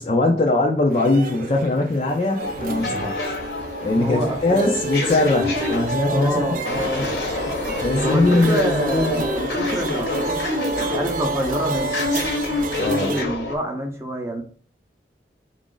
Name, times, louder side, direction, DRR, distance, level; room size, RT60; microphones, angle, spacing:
voice 1, 0.0-3.4 3.8-7.1 7.4-9.3 12.8-13.2, left 2 dB, 35° left, 1 dB, 0.4 m, -21 dB
sound 1, 0.9-13.2, right 3 dB, 50° right, 0.4 m, -30 dB
sound 2, 2.4-13.6, left 3 dB, 65° left, 0.9 m, -27 dB
voice 2, 3.9-4.9 6.1-7.3 8.0-10.4 10.8-12.1 12.8-14.4, equal, 15° right, 2 dB, 0.7 m, -27 dB
4.0 x 2.5 x 3.8 m, 0.43 s
head